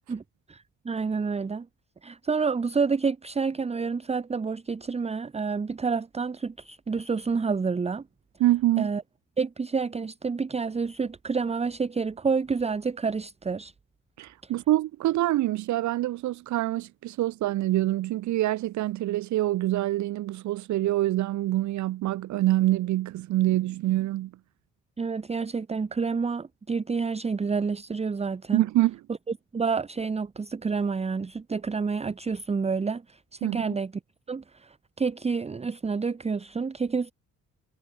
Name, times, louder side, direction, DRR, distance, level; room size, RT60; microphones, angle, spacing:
voice 1, 0.5-1.7 2.0-8.0 8.8-9.0 9.4-13.7 25.0-28.6 29.5-33.9 34.3-37.1, right 5 dB, 20° right, 0.8 m, -29 dB
voice 2, 8.4-8.9 14.2-24.3 28.5-29.0 33.4-33.8, right 15 dB, 70° right, 0.6 m, -25 dB
cardioid pair, 90°, 30 cm